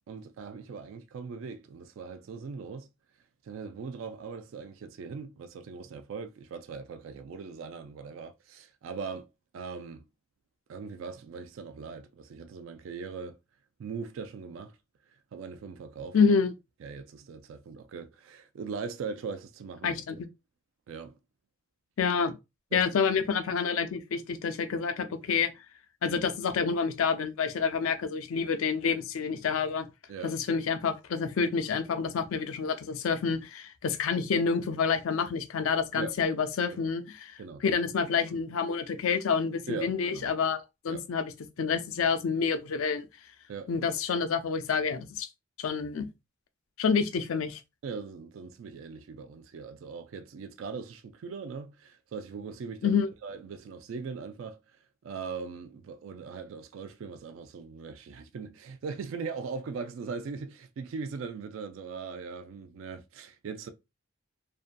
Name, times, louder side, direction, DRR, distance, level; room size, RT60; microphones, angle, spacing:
voice 1, 0.1-2.9 3.4-9.3 9.5-10.1 10.7-13.4 13.8-14.8 15.3-16.3 16.8-20.0 20.9-21.2 22.7-22.8 30.1-30.4 36.0-36.1 36.8-36.9 37.4-37.6 39.7-40.3 40.9-41.0 43.5-43.7 47.8-54.6 55.0-63.7, right 5 dB, 70° right, 0.3 m, -40 dB
voice 2, 16.1-16.5 19.8-20.2 22.0-22.3 22.7-25.5 26.0-29.9 30.2-41.3 41.6-43.1 43.7-45.3 45.6-46.1 46.8-47.6 52.8-53.1, left 5 dB, 80° left, 0.4 m, -28 dB
2.6 x 2.2 x 2.4 m
head